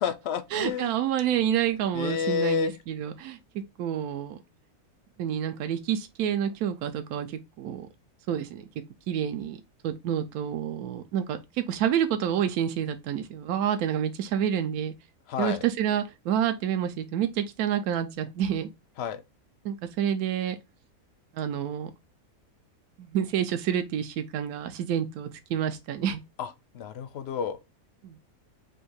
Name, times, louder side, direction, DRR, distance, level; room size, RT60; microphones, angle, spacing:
voice 1, 0.0-0.9 1.9-2.7 15.3-15.6 19.0-19.2 26.4-26.5 26.7-27.6, left 7 dB, 65° left, 0.6 m, -29 dB
voice 2, 0.5-3.4 3.8-4.4 5.2-7.9 8.3-8.6 9.1-9.6 9.8-14.9 15.4-18.7 19.6-20.6 21.3-21.9 23.0-26.2 28.0-28.3, right 9 dB, 80° right, 1.0 m, -28 dB
3.5 x 2.8 x 4.5 m
omnidirectional pair, 1.6 m